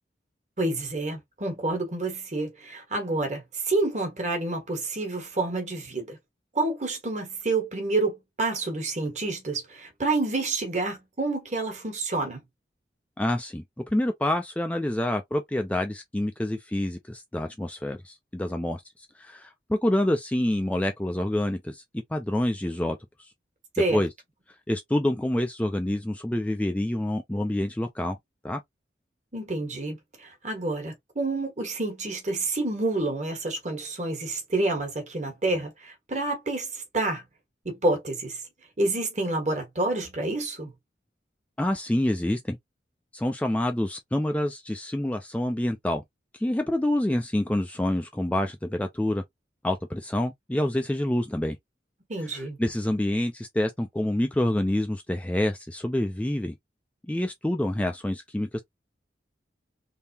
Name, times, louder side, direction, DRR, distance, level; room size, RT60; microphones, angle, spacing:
voice 1, 0.6-6.2 6.5-12.4 23.7-24.0 29.3-37.2 37.6-38.4 38.8-40.7 52.1-52.6, right 2 dB, 40° right, 1.4 m, -28 dB
voice 2, 13.2-13.6 13.9-21.8 22.1-23.3 23.9-24.1 24.7-28.2 28.4-28.6 41.6-42.6 43.1-46.0 46.3-49.2 49.6-51.6 52.3-56.5 57.1-58.6, left 1 dB, 10° left, 0.3 m, -27 dB
3.6 x 2.8 x 2.7 m
head